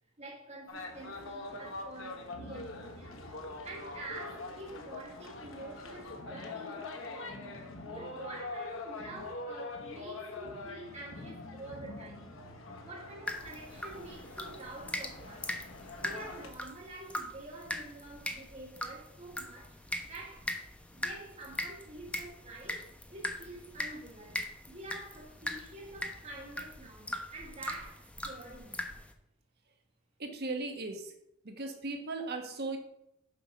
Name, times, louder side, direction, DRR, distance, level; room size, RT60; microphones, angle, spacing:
voice 1, 0.2-3.2 3.6-7.5 7.8-12.4 12.8-15.5 16.0-20.5 20.9-28.8, right 2 dB, 35° right, 1.6 m, -47 dB
sound 1, 0.7-16.5, left 2 dB, 85° left, 1.3 m, -44 dB
sound 2, 13.3-29.1, left 1 dB, 5° left, 0.8 m, -41 dB
voice 2, 30.2-31.1 31.4-32.8, right 3 dB, 55° right, 1.2 m, -37 dB
7.5 x 5.4 x 6.0 m
head